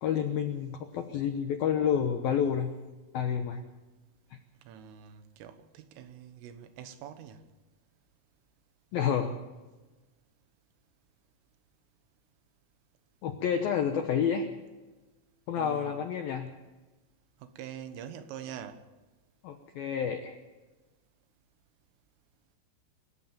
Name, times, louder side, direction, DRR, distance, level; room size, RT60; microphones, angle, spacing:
voice 1, 0.0-2.7 3.1-3.6 8.9-9.4 13.2-14.5 15.5-16.5 19.4-20.4, left 8 dB, 75° left, 2.1 m, -29 dB
voice 2, 4.6-7.5 15.6-16.0 17.4-18.8, right 9 dB, 80° right, 3.8 m, -44 dB
26.5 x 14.0 x 7.5 m
omnidirectional pair, 5.9 m